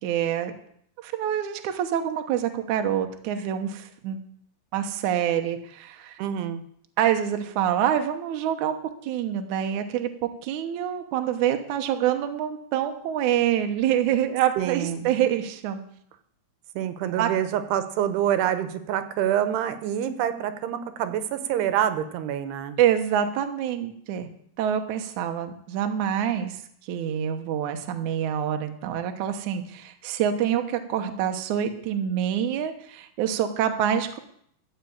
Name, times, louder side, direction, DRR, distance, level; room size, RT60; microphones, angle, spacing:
voice 1, 0.0-0.5 1.0-4.2 4.7-6.2 7.0-8.8 9.0-10.1 10.4-15.8 17.2-17.3 22.8-24.3 24.6-26.6 26.8-34.2, right 10 dB, 70° right, 6 dB, 1.9 m, -26 dB
voice 2, 6.2-6.6 14.6-15.1 16.8-22.8, right 10 dB, 90° right, 11 dB, 3.0 m, -26 dB
13.5 x 5.7 x 8.6 m, 0.68 s
omnidirectional pair, 4.6 m